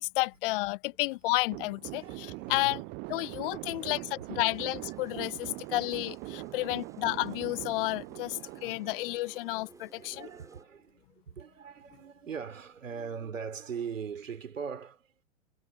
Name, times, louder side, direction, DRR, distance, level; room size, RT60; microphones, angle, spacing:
voice 1, 0.0-2.8 3.1-4.0 4.4-10.3, left 21 dB, 40° left, 1.3 m, -31 dB
voice 2, 1.4-2.8 3.2-4.6 5.0-5.8 6.2-6.9 8.4-8.8 9.6-15.2, right 6 dB, 70° right, 3.2 m, -42 dB
sound 1, 1.5-9.8, right 27 dB, 25° right, 0.7 m, -42 dB
sound 2, 4.5-10.6, right 3 dB, 10° right, 3.9 m, -56 dB
figure-of-eight pair, 100°, 39 cm